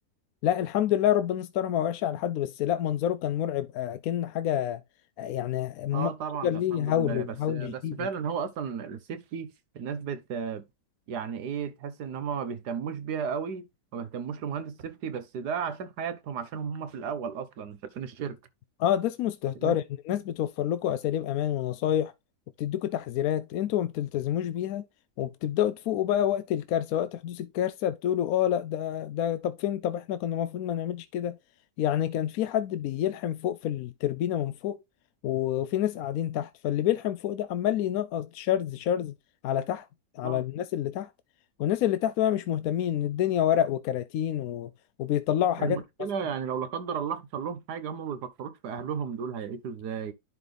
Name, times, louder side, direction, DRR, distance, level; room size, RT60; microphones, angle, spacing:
voice 1, 0.4-4.8 5.2-6.1 6.4-8.1 18.8-22.1 22.6-24.9 25.2-31.4 31.8-34.8 35.2-39.1 39.4-39.9 40.1-41.1 41.6-44.7 45.0-45.8, left 11 dB, 70° left, 0.9 m, -28 dB
voice 2, 5.9-10.6 11.1-13.7 13.9-18.4 19.5-19.8 40.2-40.4 45.6-50.1, right 7 dB, 75° right, 1.6 m, -34 dB
11.0 x 4.0 x 3.3 m
omnidirectional pair, 1.8 m